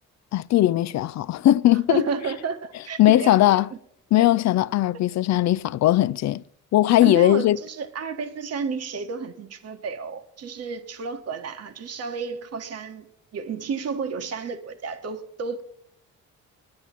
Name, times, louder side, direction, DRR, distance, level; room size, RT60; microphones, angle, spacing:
voice 1, 0.3-2.1 3.0-3.7 4.1-6.4 6.7-7.6, left 14 dB, 65° left, 0.5 m, -19 dB
voice 2, 1.9-3.8 7.0-13.0 13.3-15.6, right 5 dB, 55° right, 1.4 m, -32 dB
9.9 x 9.7 x 5.9 m
cardioid pair, 90°, 30 cm